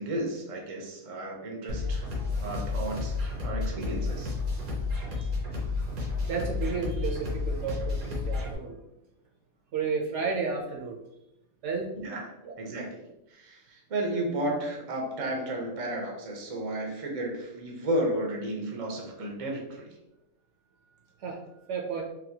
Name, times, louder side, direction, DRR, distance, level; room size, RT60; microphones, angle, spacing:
voice 1, 0.0-2.1 2.4-4.4 11.9-12.2 12.6-19.9, right 1 dB, 40° right, 0 dB, 0.5 m, -33 dB
sound 1, 1.7-8.5, left 3 dB, 90° right, 1.4 m, -31 dB
voice 2, 6.3-8.8 9.7-11.0 11.6-11.9 12.4-12.5 21.2-21.4 21.7-22.0, right 5 dB, 65° right, 1 dB, 0.8 m, -32 dB
4.1 x 2.3 x 2.7 m, 0.88 s
omnidirectional pair, 1.5 m